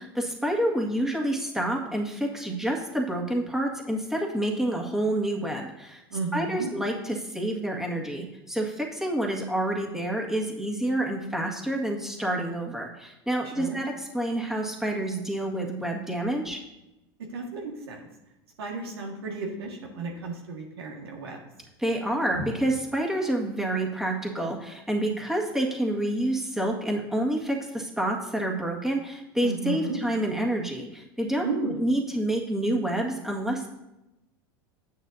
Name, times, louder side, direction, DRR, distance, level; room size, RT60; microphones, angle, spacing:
voice 1, 0.0-6.0 6.3-16.6 21.8-33.7, right 1 dB, 5° right, 0 dB, 1.7 m, -28 dB
voice 2, 6.1-6.7 13.5-13.8 17.3-18.0 18.6-21.4 29.4-30.0 31.4-31.8, right 3 dB, 80° right, 1 dB, 1.7 m, -33 dB
9.6 x 8.8 x 2.7 m, 0.95 s
hypercardioid pair, 90°, 13 cm